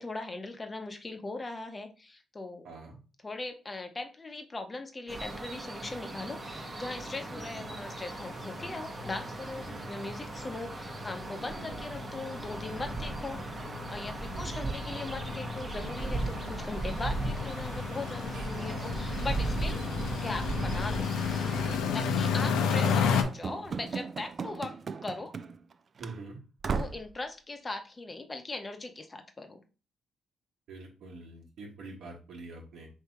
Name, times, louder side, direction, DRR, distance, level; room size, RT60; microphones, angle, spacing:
voice 1, 0.0-2.7 3.2-13.4 13.9-19.8 20.1-21.1 21.9-24.8 25.0-25.3 26.7-29.6, left 2 dB, 25° left, 6 dB, 0.8 m, -39 dB
voice 2, 2.6-3.0 7.6-7.7 9.6-9.9 11.5-11.8 14.3-14.6 18.3-19.0 19.5-19.8 22.1-22.4 26.0-26.4 30.7-32.9, right 3 dB, 75° right, -1 dB, 1.3 m, -46 dB
sound 1, 5.1-21.8, right 2 dB, 25° right, 0.8 m, -37 dB
sound 2, 6.1-6.2 6.5-6.7 7.0-7.1 7.4-23.2, left 6 dB, 90° left, 0.6 m, -33 dB
Run / Slam, 22.8-25.7 26.0-26.1 26.6-27.1, right 5 dB, 45° right, 0.3 m, -36 dB
3.3 x 2.7 x 4.6 m, 0.34 s
cardioid pair, 90°, 0 cm